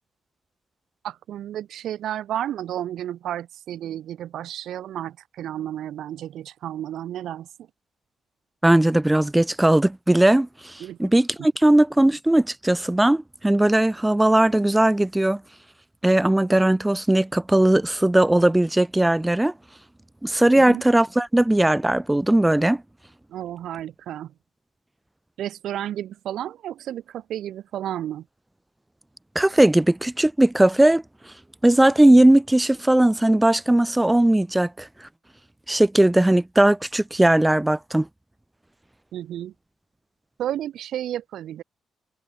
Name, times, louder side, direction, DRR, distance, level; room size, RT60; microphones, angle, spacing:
voice 1, 1.0-7.5 10.8-11.0 11.4-11.5 20.5-20.8 23.3-24.3 25.4-28.2 39.1-39.5 40.4-41.6, right 11 dB, 70° right, 6.7 m, -32 dB
voice 2, 8.6-15.4 16.0-19.5 20.2-22.8 29.4-31.0 31.6-34.9 35.7-38.1, right 1 dB, 5° right, 2.2 m, -18 dB
cardioid pair, 160°, 0 cm